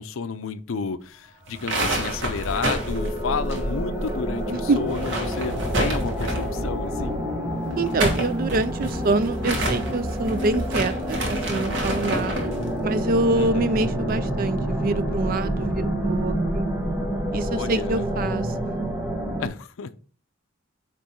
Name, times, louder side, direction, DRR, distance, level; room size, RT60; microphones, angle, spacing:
voice 1, 0.0-7.2 13.3-13.9 17.4-18.0 19.4-19.9, left 5 dB, 80° left, 0.5 m, -31 dB
sound 1, 1.4-19.5, equal, 10° right, 1.1 m, -28 dB
sound 2, 1.5-4.1 4.4-4.5 4.8-6.6 7.7-12.6, right 1 dB, 65° right, 1.5 m, -29 dB
sound 3, 6.0-12.9, left 3 dB, 30° left, 1.1 m, -43 dB
voice 2, 7.8-12.5 12.8-16.7 17.3-18.8, right 2 dB, 45° right, 0.4 m, -26 dB
8.1 x 3.1 x 4.4 m
head